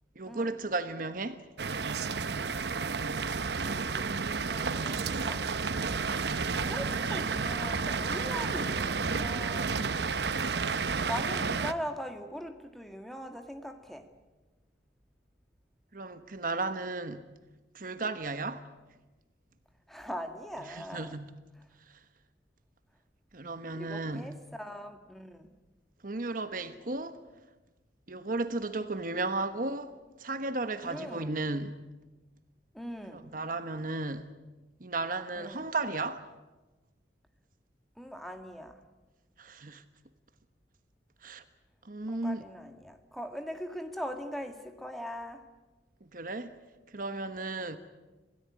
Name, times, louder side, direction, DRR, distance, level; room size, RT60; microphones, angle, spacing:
voice 1, 0.1-1.4 15.9-17.3 17.7-18.7 20.7-21.3 21.9-22.0 23.3-24.3 26.0-27.2 28.1-31.8 33.1-34.3 34.8-36.3 39.4-39.8 41.2-41.4 41.8-42.4 46.0-46.6 46.9-47.8, right 3 dB, 50° right, 1.2 m, -34 dB
sound 1, 1.6-11.7, right 4 dB, 70° right, 0.9 m, -31 dB
voice 2, 3.6-4.1 4.5-5.5 6.5-9.7 11.1-14.1 19.9-21.2 23.7-25.5 30.8-31.4 32.7-33.3 35.3-35.7 38.0-38.8 42.1-45.4, equal, ahead, 1.8 m, -41 dB
27.0 x 17.5 x 9.6 m
head